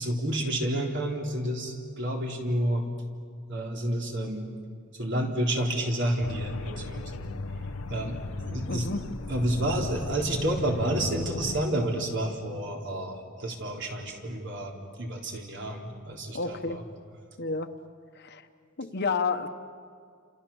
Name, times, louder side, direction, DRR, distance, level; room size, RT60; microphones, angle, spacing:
voice 1, 0.0-2.9 3.5-4.5 5.0-7.3 7.9-8.2 8.5-8.9 9.3-14.7 15.0-16.8, right 1 dB, 60° right, 1 dB, 3.8 m, -30 dB
sound 1, 6.2-11.7, left 2 dB, 85° left, 0.9 m, -36 dB
voice 2, 8.7-9.0 16.3-16.8 17.4-17.7 18.1-18.5 18.8-19.5, left 4 dB, 55° left, 8 dB, 1.2 m, -30 dB
29.5 x 27.5 x 7.2 m, 2.2 s
head